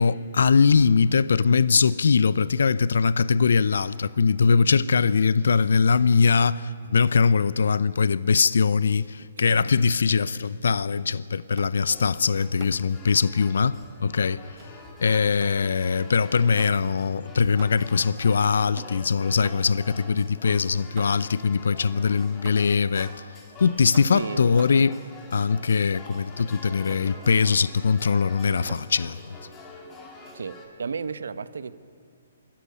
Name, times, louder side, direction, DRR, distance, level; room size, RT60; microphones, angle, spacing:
voice 1, 0.0-14.4 15.0-23.1 23.6-25.0 25.3-29.2, left 5 dB, 75° left, 0.6 m, -21 dB
voice 2, 9.4-9.7 24.1-24.4 30.3-31.7, right 5 dB, 75° right, 1.0 m, -33 dB
sound 1, 11.6-11.9 12.6-13.0 14.6-15.7 16.5-17.1 17.6-18.1 18.8-19.9 21.0-21.4 22.5-22.9 23.9-25.0 26.4-26.6 26.9-27.6 28.6-29.0, right 11 dB, 40° right, 1.3 m, -46 dB
sound 2, 11.9-30.7, left 2 dB, 20° left, 4.5 m, -46 dB
25.5 x 13.5 x 9.8 m
hypercardioid pair, 135°, 0 cm